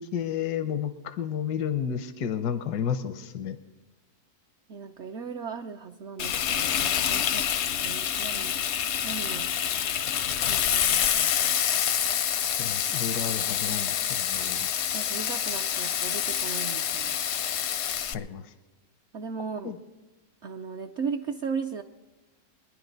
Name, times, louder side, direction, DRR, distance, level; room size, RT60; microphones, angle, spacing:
voice 1, 0.0-3.6 12.6-14.7 18.1-18.4 19.6-19.7, left 8 dB, 85° left, 10 dB, 1.3 m, -31 dB
voice 2, 4.7-7.5 7.8-8.5 9.0-9.5 10.5-11.6 14.9-17.2 19.1-19.7 20.4-21.8, right 6 dB, 65° right, 3 dB, 0.7 m, -37 dB
Frying (food), 6.2-18.1, left 9 dB, 65° left, 0.7 m, -27 dB
23.0 x 10.5 x 3.9 m, 1.1 s
omnidirectional pair, 1.7 m